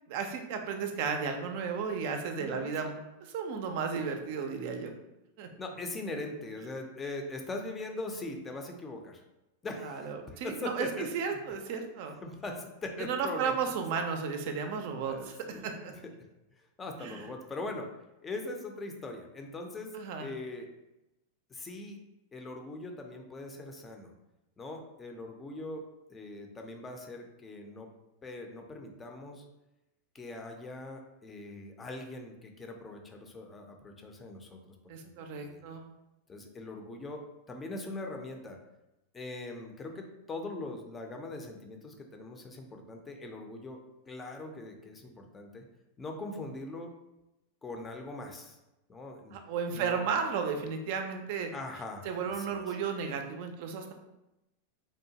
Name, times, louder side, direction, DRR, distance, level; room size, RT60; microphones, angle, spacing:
voice 1, 0.1-2.9 3.2-4.9 5.4-5.5 9.8-12.2 13.0-15.9 17.0-17.2 19.9-20.3 34.9-35.8 49.3-51.5 52.0-53.9, right 6 dB, 60° right, 5 dB, 0.4 m, -34 dB
voice 2, 2.4-2.7 5.6-9.2 9.6-11.4 12.2-13.5 15.0-16.1 16.6-17.9 18.2-20.7 21.5-22.0 22.3-24.1 24.6-25.8 26.1-27.9 28.2-29.4 30.1-34.8 35.0-35.8 36.3-38.6 39.1-45.6 46.0-46.9 47.6-48.6 48.9-49.4 49.7-50.0 51.5-52.8, left 2 dB, 20° left, 3 dB, 0.4 m, -41 dB
2.7 x 2.2 x 2.8 m, 0.95 s
hypercardioid pair, 110°, 0 cm